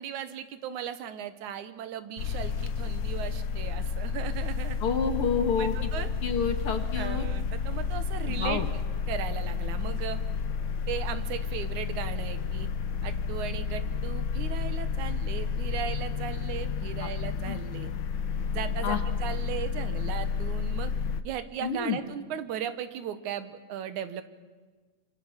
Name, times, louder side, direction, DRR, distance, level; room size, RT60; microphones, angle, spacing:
voice 1, 0.0-4.8 5.6-6.1 6.9-8.6 9.1-10.2 10.9-12.7 13.0-17.9 18.5-20.9 21.2-24.2, right 9 dB, 85° right, 11 dB, 2.7 m, -37 dB
sound 1, 2.2-21.2, left 5 dB, 75° left, 1.0 m, -31 dB
voice 2, 4.8-5.7 6.2-7.3 8.3-8.7 17.0-17.1 17.5-17.6 18.8-19.0 21.6-22.0, left 6 dB, 50° left, 7 dB, 2.3 m, -28 dB
26.0 x 26.0 x 7.4 m, 1.4 s
omnidirectional pair, 3.3 m